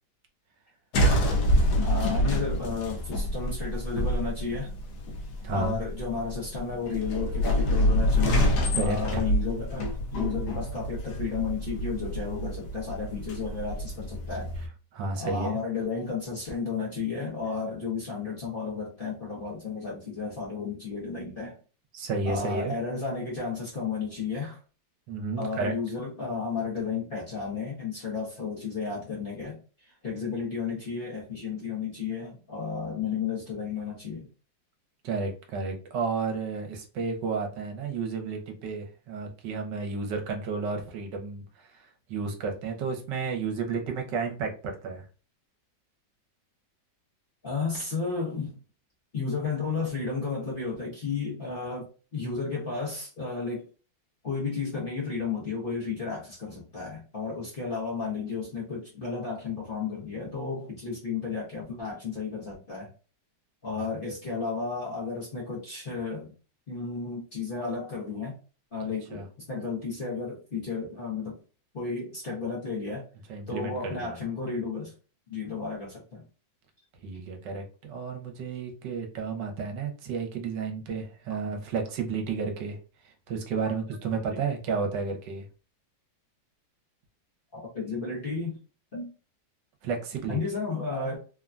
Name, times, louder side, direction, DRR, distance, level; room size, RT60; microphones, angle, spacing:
sound 1, 0.9-14.7, equal, 70° left, 1.1 m, -27 dB
voice 1, 1.8-4.7 5.5-8.5 8.8-14.5 15.2-21.6 22.2-24.6 25.4-29.6 30.0-34.3 47.4-48.6 49.1-53.7 54.2-62.9 63.6-66.3 66.7-68.3 68.7-71.4 71.7-73.1 73.5-74.9 75.3-76.2 84.3-84.4 87.5-88.6 88.9-89.1 90.3-91.2, left 5 dB, 45° left, -5 dB, 0.7 m, -33 dB
voice 2, 5.4-5.8 8.7-9.2 14.9-15.5 21.9-22.7 25.1-25.7 35.0-45.0 63.7-63.8 69.1-69.2 73.3-74.1 77.0-82.8 83.0-85.4 89.8-90.4, right 4 dB, 75° right, 4 dB, 1.3 m, -32 dB
3.3 x 2.1 x 2.4 m, 0.35 s
omnidirectional pair, 2.0 m